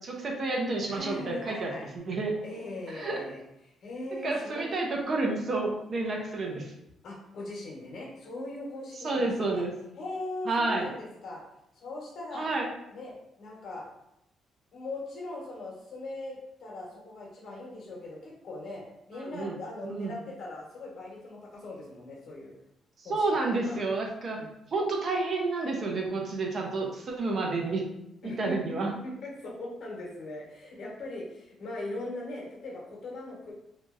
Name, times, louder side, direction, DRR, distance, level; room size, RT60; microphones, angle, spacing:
voice 1, 0.0-2.4 2.9-3.2 4.2-6.7 9.0-9.7 10.5-10.9 12.3-12.7 19.3-19.5 19.8-20.1 23.1-24.4 24.7-27.9 28.2-28.9, right 3 dB, 50° right, 0 dB, 0.6 m, -30 dB
voice 2, 0.9-1.9 2.4-4.8 7.0-9.6 10.0-11.4 11.7-12.5 12.9-13.9 14.7-22.5 23.0-23.2 23.6-23.8 24.3-24.6 28.2-28.6 29.0-33.5, left 2 dB, 60° left, -2 dB, 1.0 m, -40 dB
2.8 x 2.5 x 2.4 m, 0.82 s
cardioid pair, 90°, 0 cm